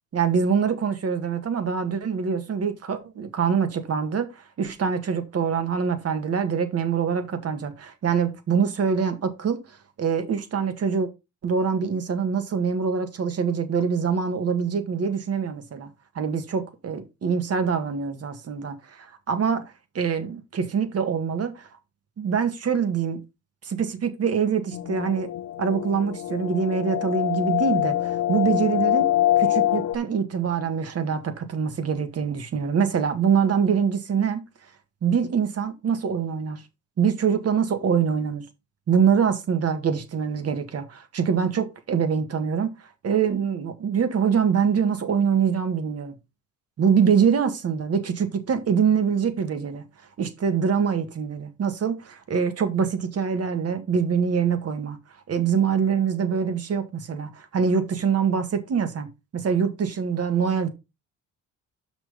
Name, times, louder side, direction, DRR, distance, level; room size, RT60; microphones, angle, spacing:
voice 1, 0.1-11.1 11.4-19.6 19.9-21.7 22.2-23.2 23.6-25.3 25.6-29.1 29.4-34.4 35.0-36.6 37.0-38.5 38.9-46.2 46.8-49.8 50.2-55.0 55.3-59.1 59.3-60.7, right 6 dB, 55° right, 1.8 m, -24 dB
sound 1, 24.7-30.0, left 13 dB, 70° left, 0.8 m, -24 dB
6.2 x 6.1 x 5.1 m
cardioid pair, 90°, 30 cm